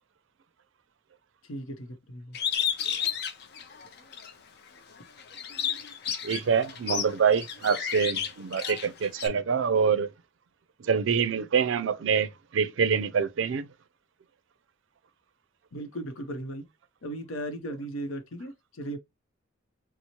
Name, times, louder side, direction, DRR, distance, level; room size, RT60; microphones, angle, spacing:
voice 1, 1.5-2.4 15.7-16.6 17.0-19.0, right 1 dB, 85° left, 0.7 m, -37 dB
Bird, 2.3-4.3 4.8-9.3, left 8 dB, 55° left, 0.5 m, -32 dB
voice 2, 6.2-10.1 10.8-13.7, right 6 dB, 65° right, 0.4 m, -25 dB
4.2 x 2.0 x 2.9 m
head